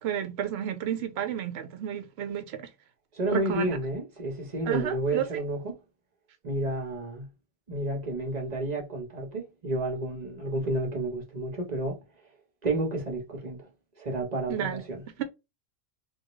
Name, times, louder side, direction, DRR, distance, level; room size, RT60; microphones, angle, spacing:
voice 1, 0.0-2.7 3.3-3.8 4.7-5.2 14.5-14.8 15.2-15.3, right 10 dB, 85° right, 0.9 m, -31 dB
voice 2, 3.1-5.8 6.4-7.3 7.7-12.0 12.6-13.7 14.0-15.2, right 1 dB, 45° right, 1.0 m, -31 dB
3.5 x 2.3 x 3.0 m
omnidirectional pair, 1.0 m